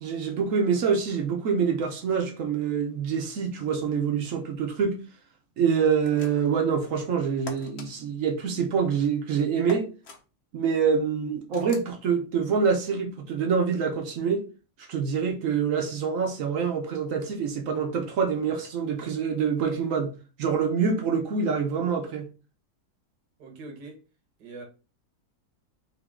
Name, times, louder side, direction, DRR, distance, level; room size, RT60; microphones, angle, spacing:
voice 1, 0.0-5.0 5.6-9.9 10.5-14.5 14.9-22.3, right 6 dB, 60° right, 0.9 m, -26 dB
sound 1, 6.0-6.6 7.5-7.9 9.7-10.2 11.5-11.9, left 3 dB, 55° left, 0.8 m, -42 dB
voice 2, 23.4-24.0 24.4-24.6, right 3 dB, 75° right, 1.5 m, -42 dB
3.7 x 2.7 x 3.5 m
omnidirectional pair, 1.8 m